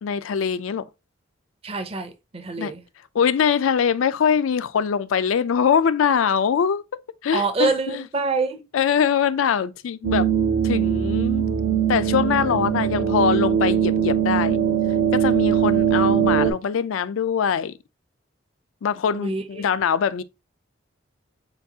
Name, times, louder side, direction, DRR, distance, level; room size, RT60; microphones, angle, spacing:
voice 1, 0.0-0.8 2.6-2.7 3.1-6.8 7.2-8.0 8.7-10.3 10.6-11.4 11.9-14.6 15.1-17.8 18.8-20.2, left 7 dB, 85° left, 0.4 m, -22 dB
voice 2, 1.6-2.8 7.3-8.6 19.1-19.6, right 4 dB, 30° right, 0.5 m, -26 dB
sound 1, 10.0-16.5, right 8 dB, 80° right, 0.8 m, -21 dB
6.8 x 2.3 x 2.7 m
head